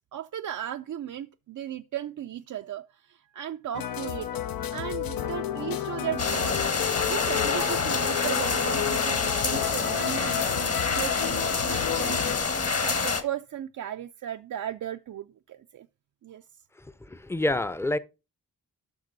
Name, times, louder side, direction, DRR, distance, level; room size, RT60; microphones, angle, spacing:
voice 1, 0.1-6.6 7.0-12.2 12.8-15.9 16.2-16.4, right 11 dB, 60° right, 0.4 m, -36 dB
sound 1, 3.7-12.4, left 10 dB, 80° left, 0.7 m, -32 dB
sound 2, 6.2-13.2, left 5 dB, 45° left, 1.3 m, -27 dB
voice 2, 17.1-18.0, left 1 dB, 5° left, 0.5 m, -27 dB
12.0 x 5.9 x 3.9 m
cardioid pair, 85°, 35 cm